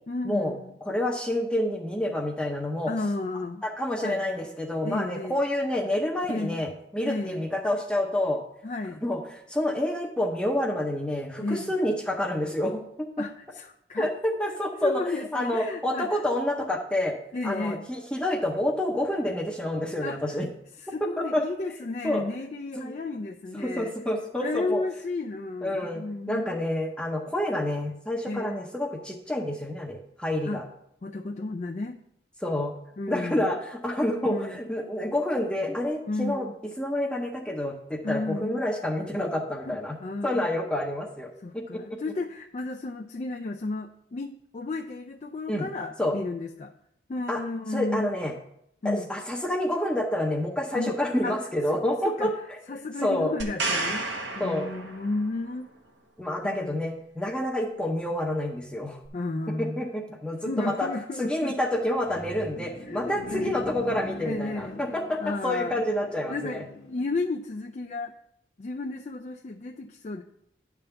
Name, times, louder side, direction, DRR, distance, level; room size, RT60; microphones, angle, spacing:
voice 1, 0.1-0.7 2.9-3.6 4.0-4.2 4.8-5.4 6.3-6.6 7.0-7.4 8.6-9.0 11.4-11.7 13.2-14.1 14.8-16.2 17.3-17.9 20.0-20.4 20.9-23.9 24.4-26.5 28.3-28.6 30.5-30.6 31.0-32.0 33.0-33.5 34.2-34.6 36.1-36.5 38.0-38.6 39.6-40.5 41.4-46.7 47.1-48.1 48.8-49.1 50.7-51.0 51.2-51.5 52.0-52.3 52.7-55.7 56.4-56.8 59.1-59.8 60.4-61.5 62.9-63.6 64.2-64.8 65.2-65.9 66.3-68.1 68.6-70.2, left 3 dB, 40° left, 3 dB, 0.4 m, -33 dB
voice 2, 0.9-2.9 3.6-8.4 9.0-13.2 14.0-15.0 15.3-17.2 17.4-20.5 21.2-21.4 22.0-22.2 22.8-22.9 23.5-24.8 25.6-26.0 26.3-30.6 32.4-32.7 33.1-36.5 36.8-40.0 40.2-41.8 45.5-45.7 46.0-46.2 47.3-47.4 47.7-48.3 48.8-52.6 53.0-53.4 54.4-54.7 56.2-59.0 59.6-60.9 61.2-66.6, left 1 dB, 5° left, 0 dB, 0.7 m, -28 dB
sound 1, 53.4-55.4 59.0-59.1, right 3 dB, 85° right, 1.4 m, -31 dB
sound 2, 61.7-67.3, left 1 dB, 70° left, 1.1 m, -42 dB
9.8 x 3.6 x 6.8 m, 0.75 s
head